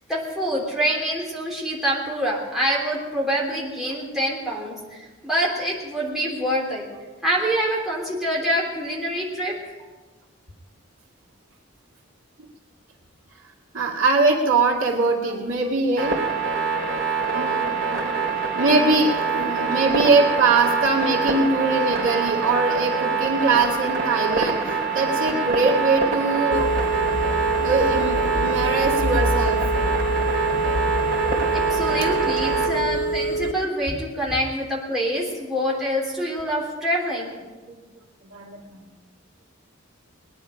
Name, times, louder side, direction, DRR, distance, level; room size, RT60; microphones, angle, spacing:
voice 1, 0.1-6.8 7.2-9.6 31.5-37.4, equal, ahead, -5 dB, 3.3 m, -26 dB
voice 2, 13.7-16.2 16.5-26.7 27.4-29.9 33.9-34.0 37.7-37.8 38.3-38.8, right 3 dB, 75° right, -2 dB, 2.3 m, -22 dB
sound 1, 16.0-32.7, right 5 dB, 50° right, 2.6 m, -25 dB
Telephone, 26.5-33.5, right 1 dB, 60° left, 0.9 m, -25 dB
20.0 x 10.5 x 5.1 m, 1.3 s
head